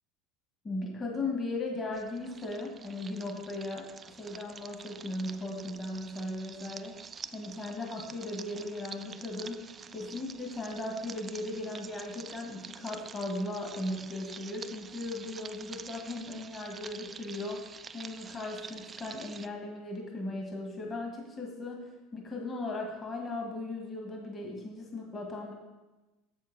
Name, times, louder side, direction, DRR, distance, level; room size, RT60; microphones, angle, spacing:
voice 1, 0.6-7.0 7.3-9.7 9.9-25.5, left 2 dB, 30° left, 1 dB, 1.5 m, -37 dB
sound 1, 1.9-19.5, right 6 dB, 30° right, 0.3 m, -47 dB
7.1 x 6.9 x 3.9 m, 1.1 s
hypercardioid pair, 95°, 0 cm